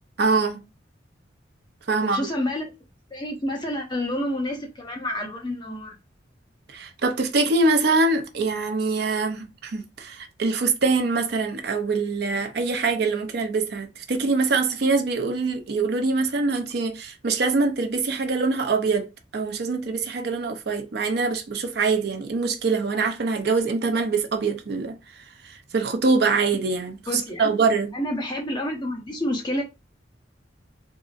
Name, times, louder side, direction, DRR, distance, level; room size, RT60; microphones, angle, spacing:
voice 1, 0.2-0.6 1.9-2.3 6.7-24.9 25.4-27.9, right 3 dB, 60° right, 0.5 m, -24 dB
voice 2, 2.0-2.7 3.1-5.9 27.1-27.5 27.9-29.6, left 1 dB, 25° left, 0.8 m, -29 dB
3.7 x 2.0 x 2.4 m
head